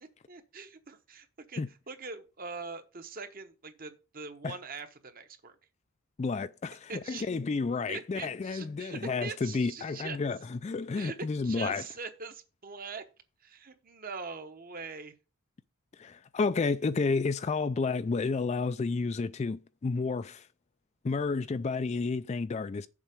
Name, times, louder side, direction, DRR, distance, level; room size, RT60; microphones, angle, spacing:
voice 1, 0.3-5.6 6.9-7.3 7.9-10.2 11.0-11.2 11.4-13.0 13.4-15.2, right 4 dB, 40° right, 1.0 m, -42 dB
voice 2, 6.2-11.8 16.0-20.5 21.0-22.9, left 4 dB, 30° left, 0.3 m, -31 dB
7.2 x 4.6 x 6.7 m
head